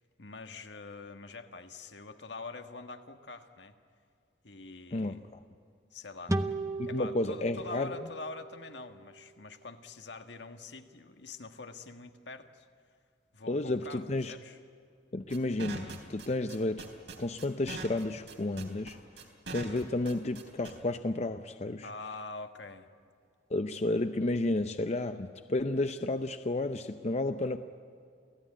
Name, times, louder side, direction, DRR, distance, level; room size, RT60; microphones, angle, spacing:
voice 1, 0.2-3.7 4.4-5.3 5.9-6.4 6.9-12.6 13.3-14.6 21.8-22.9, left 3 dB, 75° left, 7 dB, 1.5 m, -45 dB
sound 1, 6.3-9.6, right 2 dB, 15° right, 0.9 m, -37 dB
voice 2, 6.8-8.1 13.5-14.3 15.1-16.9 17.2-19.0 19.5-21.9 23.5-27.6, left 2 dB, 35° left, 9 dB, 0.6 m, -32 dB
sound 2, 15.3-20.7, right 3 dB, 80° right, 3.8 m, -42 dB
28.5 x 17.0 x 10.0 m, 2.3 s
head